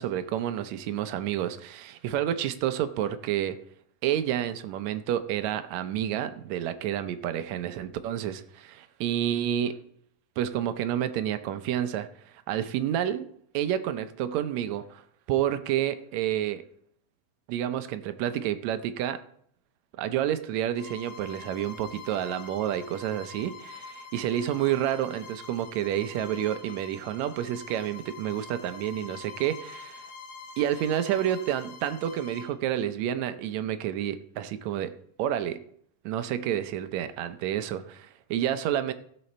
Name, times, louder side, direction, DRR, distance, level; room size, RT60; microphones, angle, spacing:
voice 1, 0.0-3.6 4.0-9.8 10.4-12.1 12.5-13.3 13.5-15.0 15.3-16.6 17.5-19.2 20.0-30.0 30.6-34.9 35.2-35.6 36.1-38.9, right 11 dB, 75° right, 10 dB, 1.7 m, -29 dB
Bowed string instrument, 20.7-32.6, left 4 dB, 65° left, 2.1 m, -45 dB
15.5 x 6.9 x 4.2 m, 0.65 s
omnidirectional pair, 3.8 m